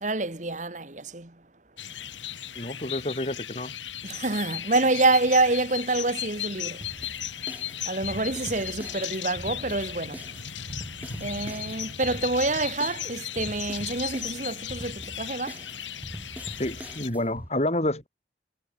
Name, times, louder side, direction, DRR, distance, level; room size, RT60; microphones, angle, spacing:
voice 1, 0.0-1.3 4.0-6.8 7.9-10.2 11.2-15.6, right 2 dB, 40° right, 1.9 m, -27 dB
sound 1, 1.8-17.1, left 10 dB, 85° left, 4.7 m, -36 dB
voice 2, 2.5-3.7 16.6-18.1, left 1 dB, 35° left, 3.3 m, -29 dB
sound 2, 6.8-17.5, equal, 10° right, 3.3 m, -42 dB
head